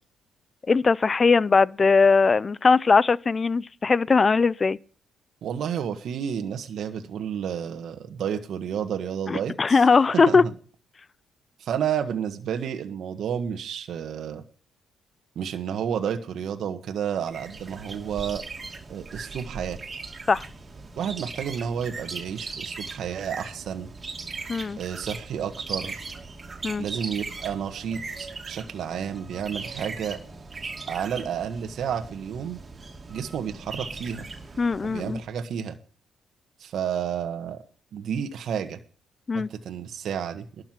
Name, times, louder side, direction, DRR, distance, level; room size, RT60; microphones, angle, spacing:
voice 1, 0.7-4.8 9.3-10.4 20.3-20.4 24.5-24.8 26.6-26.8 34.6-35.2 39.3-39.5, left 4 dB, 35° left, 0.5 m, -20 dB
voice 2, 5.4-10.5 11.6-14.4 15.3-18.4 18.9-19.8 21.0-23.9 24.8-26.0 26.8-30.2 30.9-32.6 33.1-34.3 34.8-35.8 36.6-37.6 37.9-38.8 39.3-40.6, right 8 dB, 70° right, 1.4 m, -31 dB
sound 1, 17.3-35.3, right 4 dB, 30° right, 2.6 m, -39 dB
12.0 x 6.6 x 7.6 m
cardioid pair, 90°, 0 cm